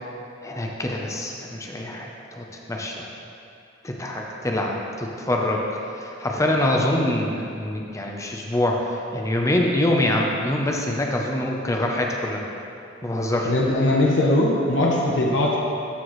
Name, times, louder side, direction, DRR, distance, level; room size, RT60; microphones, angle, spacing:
voice 1, 0.4-3.1 3.8-5.6 6.0-12.4 13.0-13.5, left 1 dB, 15° left, 0 dB, 0.6 m, -25 dB
voice 2, 13.4-15.6, left 1 dB, 65° left, -3 dB, 0.8 m, -20 dB
12.5 x 4.5 x 3.1 m, 2.6 s
head